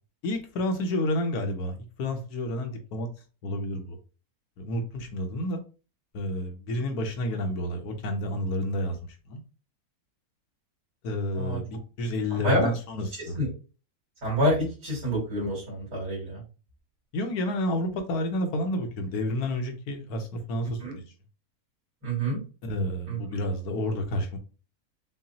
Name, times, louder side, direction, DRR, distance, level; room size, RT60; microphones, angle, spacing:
voice 1, 0.2-3.1 3.4-4.0 4.6-5.6 6.1-9.0 9.3-9.4 11.0-13.4 17.1-21.0 22.6-24.4, left 1 dB, 90° left, 5 dB, 1.3 m, -30 dB
voice 2, 14.2-16.4 20.8-20.9 22.0-22.4 23.1-23.2, equal, 85° right, -6 dB, 2.5 m, -27 dB
5.8 x 2.0 x 2.7 m, 0.34 s
omnidirectional pair, 1.6 m